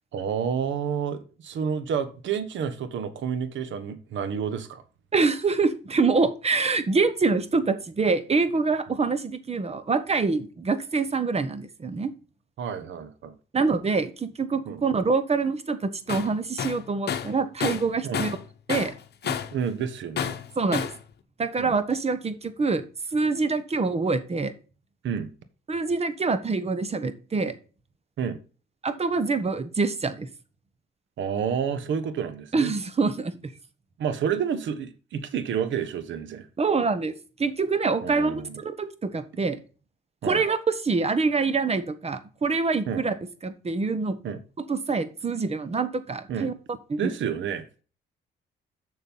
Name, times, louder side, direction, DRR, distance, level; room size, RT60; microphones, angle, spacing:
voice 1, 0.1-4.8 12.6-13.3 14.7-14.8 18.0-18.2 19.2-20.4 21.6-21.7 25.0-25.3 28.2-28.4 31.2-32.7 34.0-36.5 38.0-38.6 40.2-40.4 42.9-43.0 44.2-44.4 46.3-46.5 47.0-47.7, right 7 dB, 70° right, 12 dB, 1.3 m, -29 dB
voice 2, 5.1-12.1 13.5-18.4 18.7-18.9 20.6-20.9 21.4-22.8 23.1-24.5 25.7-27.5 28.8-30.3 32.5-33.5 36.6-37.1 37.4-39.6 40.2-43.1 43.4-44.2 44.7-46.5 46.9-47.1, right 4 dB, 30° right, 12 dB, 1.3 m, -25 dB
Tools, 16.1-16.3 16.6-18.4 18.7-19.6 20.2-21.0, left 8 dB, 55° left, 1.0 m, -30 dB
7.2 x 6.3 x 5.6 m, 0.37 s
cardioid pair, 90°, 20 cm